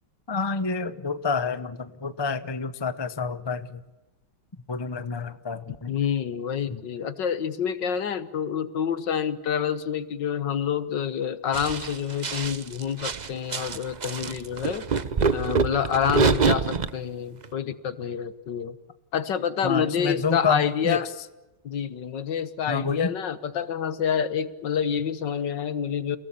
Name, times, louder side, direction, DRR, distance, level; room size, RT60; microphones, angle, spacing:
voice 1, 0.3-3.8 4.7-5.9 6.7-6.8 16.0-16.2 19.6-21.0 22.7-23.1, left 5 dB, 25° left, 12 dB, 0.5 m, -28 dB
voice 2, 5.9-14.9 15.3-18.8 19.1-21.1 21.6-26.2, left 8 dB, 65° left, 13 dB, 1.9 m, -28 dB
sound 1, 11.5-16.9 17.4-17.5, right 5 dB, 90° right, 0.4 m, -25 dB
29.5 x 18.0 x 8.6 m, 1.1 s
omnidirectional pair, 2.2 m